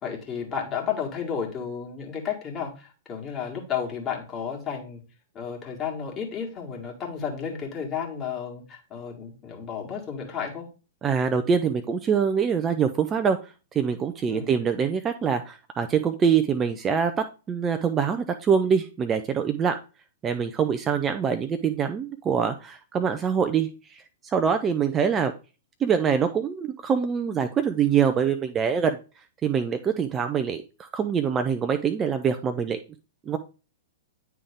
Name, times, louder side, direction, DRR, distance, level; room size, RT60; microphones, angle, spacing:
voice 1, 0.0-5.0 5.3-10.7 14.3-14.5, left 7 dB, 25° left, 0 dB, 1.8 m, -32 dB
voice 2, 11.0-19.8 20.2-25.3 25.8-29.0 29.4-32.8 33.3-33.4, right 7 dB, 20° right, 8 dB, 0.4 m, -24 dB
9.5 x 3.4 x 3.6 m, 0.33 s
figure-of-eight pair, 105°, 0 cm